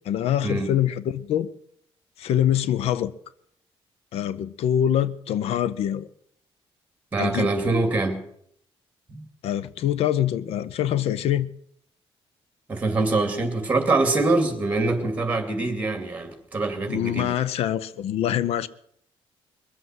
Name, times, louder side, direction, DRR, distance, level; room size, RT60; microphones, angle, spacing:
voice 1, 0.0-1.5 2.2-3.1 4.1-6.1 7.2-7.5 9.4-11.5 16.9-18.7, left 10 dB, 75° left, 0.6 m, -24 dB
voice 2, 7.1-8.2 9.1-9.2 12.7-17.3, right 3 dB, 15° right, 2.5 m, -24 dB
22.0 x 7.9 x 7.7 m
cardioid pair, 165°, 10 cm